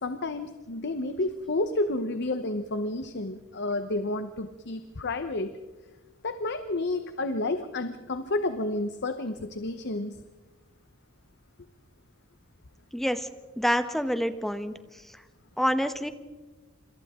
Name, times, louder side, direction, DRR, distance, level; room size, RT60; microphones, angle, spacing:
voice 1, 0.0-5.5 6.2-10.2, left 2 dB, 55° left, 9 dB, 1.0 m, -30 dB
voice 2, 12.9-13.3 13.6-14.7 15.6-16.1, equal, ahead, 9 dB, 1.0 m, -27 dB
27.0 x 27.0 x 3.7 m, 1.3 s
head